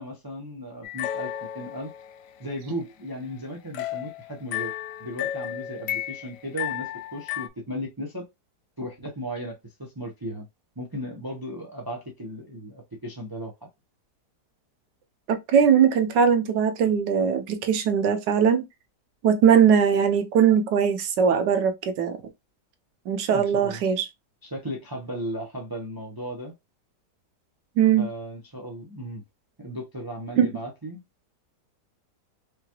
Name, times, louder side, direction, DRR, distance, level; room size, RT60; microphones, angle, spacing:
voice 1, 0.0-1.9 2.4-4.7 5.0-8.3 8.8-10.5 10.8-13.5 23.3-23.8 24.4-26.5 28.0-29.2 29.6-31.0, equal, 30° right, 0.4 m, -36 dB
sound 1, 0.8-2.3 3.7-7.5, left 12 dB, 80° left, 1.1 m, -33 dB
voice 2, 15.3-18.6 19.2-22.2 23.1-24.1 27.8-28.1 30.4-30.5, right 7 dB, 85° right, 1.4 m, -20 dB
4.8 x 2.3 x 2.9 m
omnidirectional pair, 1.8 m